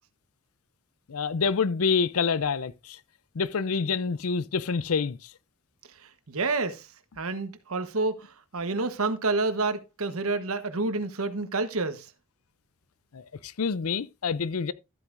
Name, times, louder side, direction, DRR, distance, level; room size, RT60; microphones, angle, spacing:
voice 1, 1.1-3.0 3.3-5.2 13.1-14.7, left 5 dB, 85° left, 0.6 m, -27 dB
voice 2, 6.0-6.9 7.2-12.1, right 3 dB, 80° right, 1.1 m, -29 dB
13.0 x 8.1 x 2.6 m
head